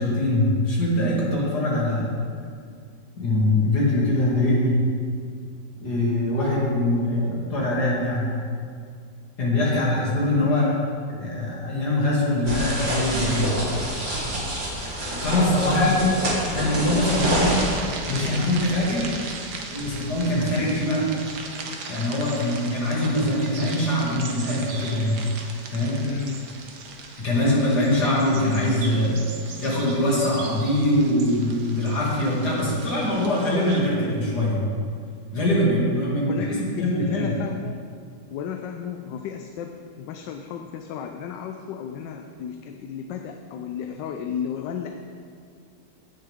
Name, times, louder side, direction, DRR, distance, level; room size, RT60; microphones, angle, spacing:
voice 1, 0.0-2.1 3.2-4.8 5.8-8.3 9.4-10.6 11.2-13.5 15.2-16.1 16.5-17.6 18.1-19.1 19.7-21.1 21.9-25.2 25.7-26.0 27.2-29.2 29.6-34.8 35.3-37.3, left 1 dB, 65° left, -6 dB, 3.0 m, -23 dB
voice 2, 10.4-10.8 15.3-16.2 26.0-26.4 36.2-37.8 38.3-44.9, left 7 dB, 85° left, 5 dB, 1.3 m, -33 dB
sound 1, 12.5-17.8, right 1 dB, 85° right, 3.4 m, -27 dB
sound 2, 17.1-33.8, right 4 dB, 70° right, 1.5 m, -38 dB
16.5 x 6.6 x 3.6 m, 2.2 s
omnidirectional pair, 1.9 m